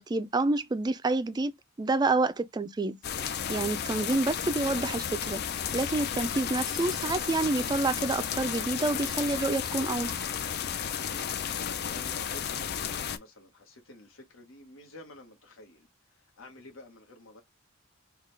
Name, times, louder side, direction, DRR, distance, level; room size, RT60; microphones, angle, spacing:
voice 1, 0.0-1.5 1.8-5.4 5.7-10.2, right 3 dB, 20° right, 0.3 m, -28 dB
sound 1, 3.0-13.2, left 8 dB, 50° left, 0.4 m, -33 dB
voice 2, 10.6-17.4, left 2 dB, 70° left, 1.2 m, -50 dB
3.7 x 2.3 x 3.2 m
head